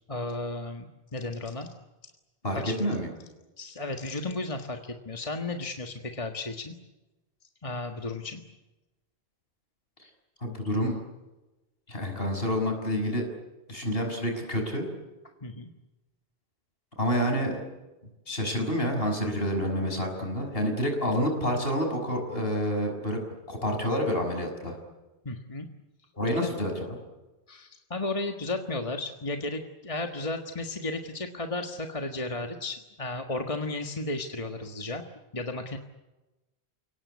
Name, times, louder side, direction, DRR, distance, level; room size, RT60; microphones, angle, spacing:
voice 1, 0.1-1.7 2.5-2.9 3.6-6.7 7.6-8.4 15.4-15.7 25.2-25.7 26.3-26.5 27.5-35.0 35.3-35.8, left 2 dB, 30° left, 4 dB, 1.7 m, -34 dB
voice 2, 2.4-3.1 10.4-11.0 11.9-13.3 13.7-14.9 17.0-17.6 18.3-23.2 23.5-24.8 26.1-27.0, equal, 60° left, 3 dB, 6.4 m, -28 dB
29.5 x 18.5 x 9.6 m, 1.1 s
omnidirectional pair, 1.1 m